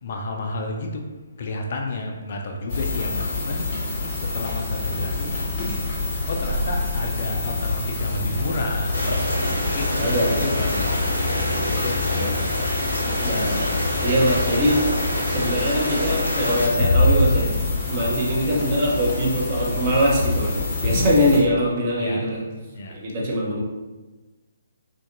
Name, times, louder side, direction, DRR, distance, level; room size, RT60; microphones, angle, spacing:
voice 1, 0.0-1.0 1.4-3.7 4.2-5.8 6.3-8.9 9.4-10.2 10.4-11.0 11.3-12.4 17.7-18.0 20.8-21.1 22.0-22.2 22.7-22.9, left 2 dB, 45° left, 2 dB, 0.3 m, -31 dB
sound 1, 2.7-21.4, left 3 dB, 30° left, 0.7 m, -26 dB
sound 2, 8.9-16.7, equal, 85° right, 0.9 m, -27 dB
voice 2, 10.0-10.5 13.2-13.7 14.0-14.8 15.2-17.5 17.9-22.5 22.9-23.6, equal, 30° right, -4 dB, 0.6 m, -22 dB
2.5 x 2.4 x 2.5 m, 1.2 s
figure-of-eight pair, 135°, 0 cm